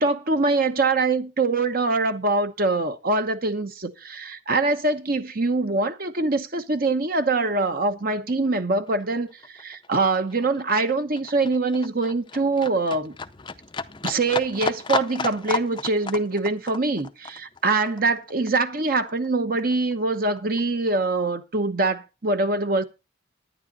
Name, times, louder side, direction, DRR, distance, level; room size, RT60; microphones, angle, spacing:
voice 1, 0.0-13.1 14.0-22.8, right 3 dB, 45° right, 1.0 m, -24 dB
Livestock farm animals working animals, 7.9-8.0 8.3-19.3 19.6-20.6 20.9-21.0, left 4 dB, 25° left, 0.6 m, -33 dB
11.5 x 10.0 x 4.0 m
head